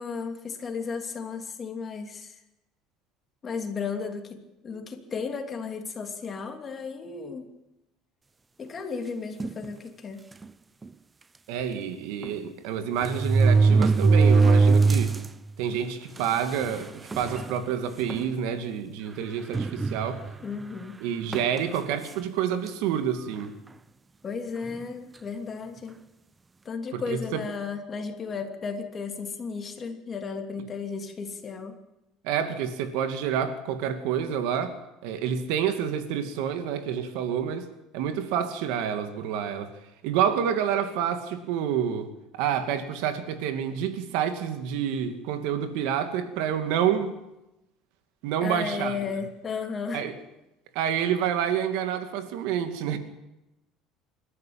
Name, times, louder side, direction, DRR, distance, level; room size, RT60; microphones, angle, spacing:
voice 1, 0.0-2.4 3.4-7.5 8.6-10.2 20.4-21.0 24.2-26.0 26.6-31.8 48.4-50.0, left 5 dB, 25° left, 4 dB, 2.9 m, -34 dB
sound 1, 9.4-9.7 10.4-10.5 10.8-10.9 12.2-12.3 13.0-15.3 15.7-15.8 16.6-16.7 17.1-17.5 18.1-18.3 19.5-20.4 21.3-21.6, right 4 dB, 15° right, 0.7 m, -20 dB
voice 2, 11.5-15.2 15.6-20.2 21.0-23.6 26.9-27.4 32.2-37.7 37.9-39.7 40.0-47.1 48.2-49.0 49.9-50.1 50.7-53.0, right 8 dB, 75° right, 8 dB, 2.5 m, -28 dB
27.0 x 13.0 x 8.9 m, 0.94 s
cardioid pair, 140°, 0 cm